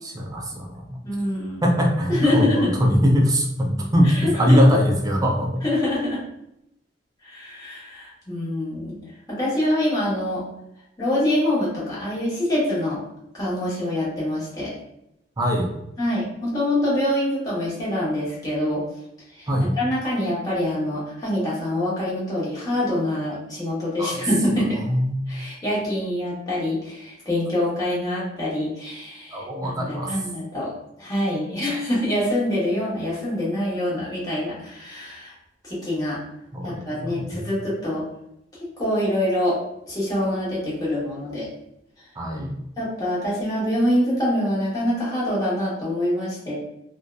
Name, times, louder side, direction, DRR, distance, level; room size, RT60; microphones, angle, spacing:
voice 1, 0.0-1.0 1.6-5.6 15.4-15.7 19.5-19.7 24.0-24.3 24.9-25.2 29.3-30.2 36.5-37.5 42.2-42.6, equal, 20° right, 0 dB, 0.4 m, -21 dB
voice 2, 1.0-1.8 2.1-2.8 4.0-4.6 5.6-6.2 7.2-9.0 9.3-10.4 11.0-13.0 13.3-14.7 16.0-18.8 19.3-19.5 19.8-24.8 25.3-30.7 31.0-35.3 35.6-36.2 36.6-38.0 38.8-39.6 39.9-41.5 42.8-46.5, left 1 dB, 20° left, -8 dB, 0.9 m, -25 dB
2.6 x 2.2 x 2.2 m, 0.81 s
head